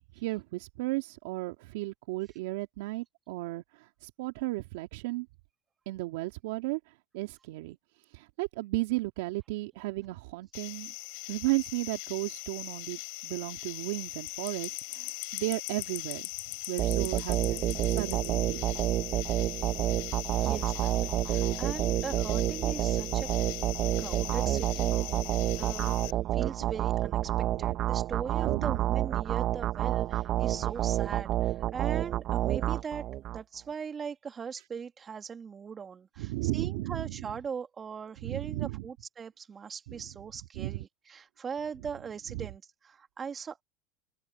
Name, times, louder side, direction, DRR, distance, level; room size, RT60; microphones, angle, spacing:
voice 1, 0.2-3.6 4.0-5.3 5.9-6.8 7.1-7.8 8.1-10.9 11.3-16.3 16.7-18.6 28.4-28.8 36.2-37.1 38.2-38.8 39.9-40.0 40.6-40.8, right 21 dB, 75° right, 2.4 m, -34 dB
sound 1, 10.5-26.1, left 38 dB, 65° left, 5.4 m, -40 dB
sound 2, 16.8-33.4, right 13 dB, 50° right, 1.0 m, -29 dB
voice 2, 20.3-23.3 24.0-24.9 25.6-43.6, right 6 dB, 30° right, 2.9 m, -40 dB
open air
hypercardioid pair, 95°, 0 cm